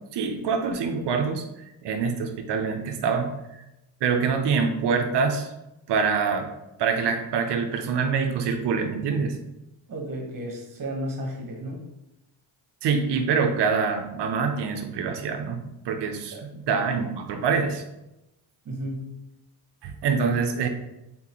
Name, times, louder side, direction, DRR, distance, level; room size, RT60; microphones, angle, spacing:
voice 1, 0.1-1.4 1.8-3.6 4.0-5.5 5.9-6.5 6.8-9.4 12.8-17.8 19.8-20.7, right 5 dB, 60° right, 5 dB, 0.8 m, -25 dB
voice 2, 9.9-11.8 16.3-16.5 18.6-19.1, equal, 45° right, 0 dB, 1.3 m, -33 dB
3.8 x 3.7 x 3.0 m, 0.91 s
cardioid pair, 80°, 45 cm